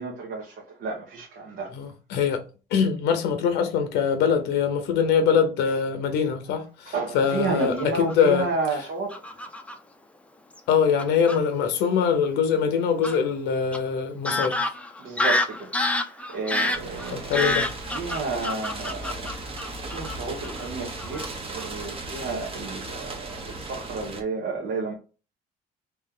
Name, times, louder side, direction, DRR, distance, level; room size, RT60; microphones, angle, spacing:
voice 1, 0.0-1.7 6.9-9.2 15.0-15.7 16.1-17.5 17.9-24.9, right 3 dB, 70° right, 1.2 m, -31 dB
voice 2, 1.7-2.4 2.7-8.5 10.7-14.6 17.1-17.7, left 7 dB, 90° left, 0.8 m, -23 dB
Fowl / Bird vocalization bird call bird song, 7.6-8.3 9.1-9.7 10.6-10.7 11.0-11.4 13.0-13.2 13.7-13.8 14.2-20.2 20.4-20.7 21.0-21.3 21.6-21.8, left 2 dB, 10° left, 0.5 m, -28 dB
sound 1, 16.7-24.2, right 2 dB, 35° right, 1.1 m, -36 dB
3.3 x 3.1 x 3.7 m
cardioid pair, 110°, 17 cm